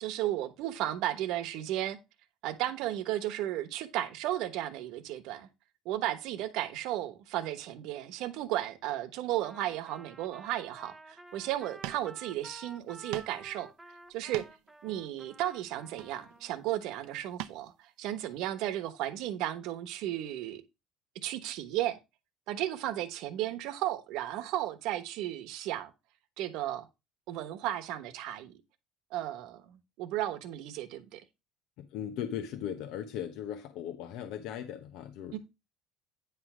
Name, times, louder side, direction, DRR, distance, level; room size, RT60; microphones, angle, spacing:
voice 1, 0.0-2.0 2.4-5.5 5.8-13.7 14.1-14.4 14.8-20.6 21.2-22.0 22.5-25.9 26.4-26.9 27.3-28.6 29.1-31.2 35.3-35.4, right 13 dB, 65° right, 1.1 m, -34 dB
Trumpet, 9.4-16.5, right 2 dB, 5° right, 0.7 m, -52 dB
sound 1, 11.5-11.6 11.8-12.1 12.5-12.6 13.1-13.4 14.1-14.7 15.8-16.4 17.4-17.6 18.1-18.2, right 14 dB, 85° right, 0.7 m, -41 dB
voice 2, 31.8-35.4, left 9 dB, 65° left, 0.9 m, -38 dB
9.6 x 3.4 x 6.0 m
cardioid pair, 160°, 0 cm